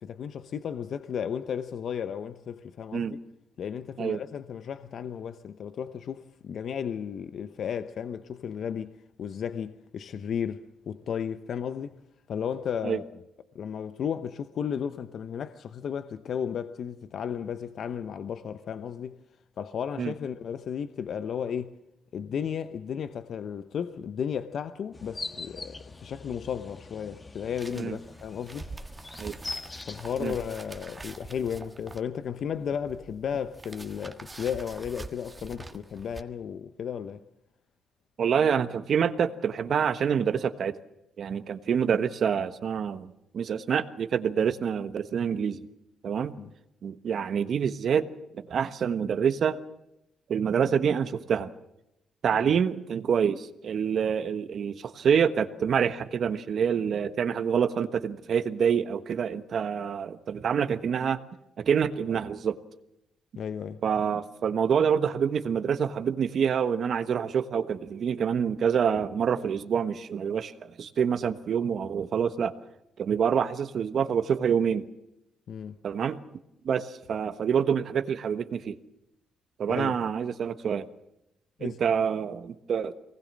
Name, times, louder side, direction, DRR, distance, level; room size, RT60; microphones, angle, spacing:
voice 1, 0.0-3.1 3.6-8.9 9.2-11.9 12.3-13.1 13.5-19.2 19.6-21.7 22.1-28.7 29.9-37.2 46.4-46.5 52.4-52.6 63.3-63.8 75.5-75.8 79.7-80.1 81.6-81.8, left 8 dB, 60° left, 0.9 m, -34 dB
sound 1, 24.9-30.5, left 3 dB, 25° left, 1.5 m, -42 dB
sound 2, 27.6-36.2, right 2 dB, 20° right, 1.6 m, -45 dB
voice 2, 38.2-40.8 41.2-45.6 46.0-46.3 46.8-48.1 48.5-49.6 50.3-51.5 52.2-61.2 61.6-62.6 63.8-72.5 73.0-74.8 75.8-76.2 76.6-78.7 79.6-80.8 81.6-82.9, right 7 dB, 55° right, 1.3 m, -26 dB
23.5 x 19.5 x 7.5 m
cardioid pair, 90°, 0 cm